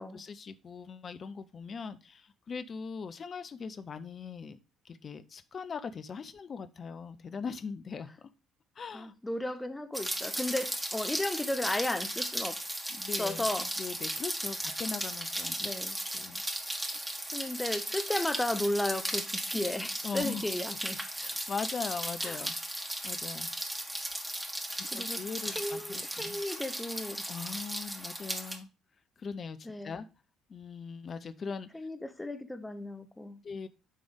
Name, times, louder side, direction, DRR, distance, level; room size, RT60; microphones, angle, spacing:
voice 1, 0.0-4.6 4.8-8.3 8.8-9.1 13.0-13.5 13.8-15.7 16.1-16.4 20.0-20.5 21.2-22.6 23.0-23.5 24.7-26.4 27.3-28.7 29.2-29.6 29.8-30.1 30.5-31.9 33.4-33.7, left 5 dB, 40° left, 0.6 m, -40 dB
voice 2, 8.9-12.6 13.1-13.7 15.6-16.0 17.2-21.0 22.2-22.4 24.9-27.2 29.6-29.9 31.7-33.4, left 1 dB, 10° left, 1.1 m, -34 dB
Rain, 9.9-28.6, right 1 dB, 10° right, 1.7 m, -36 dB
9.8 x 3.4 x 5.1 m
figure-of-eight pair, 50°, 0 cm